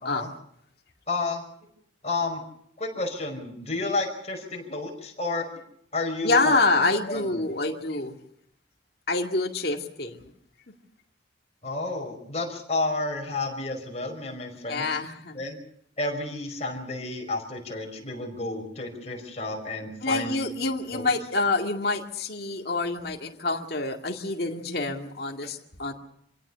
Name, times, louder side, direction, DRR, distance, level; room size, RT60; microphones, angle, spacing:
voice 1, 1.1-1.4 2.0-2.4 2.8-5.5 5.9-6.6 7.1-7.4 11.6-14.9 15.3-15.6 16.0-20.3 20.9-21.1, left 2 dB, 35° left, 2 dB, 5.4 m, -31 dB
voice 2, 6.2-8.1 9.1-10.3 14.7-15.4 20.0-25.9, left 3 dB, 55° left, 2 dB, 2.2 m, -27 dB
26.5 x 17.5 x 6.9 m, 0.69 s
head